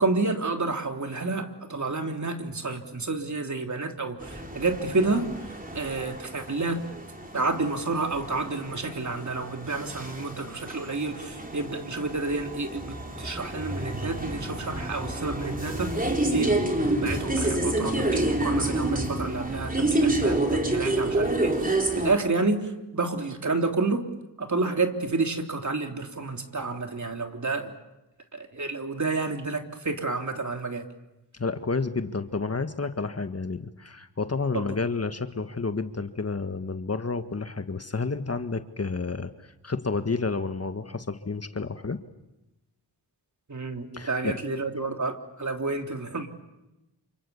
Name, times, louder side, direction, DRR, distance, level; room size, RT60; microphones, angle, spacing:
voice 1, 0.0-6.8 7.3-24.1 24.4-27.7 28.3-30.9 34.5-34.7 43.5-46.3, right 3 dB, 40° right, 4 dB, 3.4 m, -29 dB
sound 1, 4.2-22.1, right 2 dB, 20° right, 4.4 m, -29 dB
voice 2, 31.3-42.0 43.9-44.4, left 4 dB, 35° left, 9 dB, 1.6 m, -30 dB
28.5 x 26.0 x 7.1 m, 0.98 s
cardioid pair, 45°, 43 cm